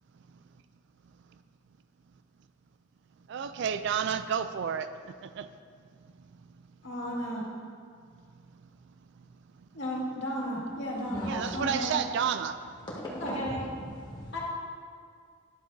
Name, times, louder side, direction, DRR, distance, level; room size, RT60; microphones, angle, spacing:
voice 1, 3.3-4.9 5.2-5.5 11.2-12.6, right 7 dB, 55° right, 11 dB, 0.3 m, -30 dB
voice 2, 6.8-7.4 9.7-12.0 13.2-13.6 14.3-14.4, equal, 60° left, -5 dB, 2.0 m, -34 dB
voice 3, 11.0-11.6 12.8-14.4, equal, 20° left, -6 dB, 1.5 m, -38 dB
11.0 x 7.4 x 2.6 m, 2.2 s
head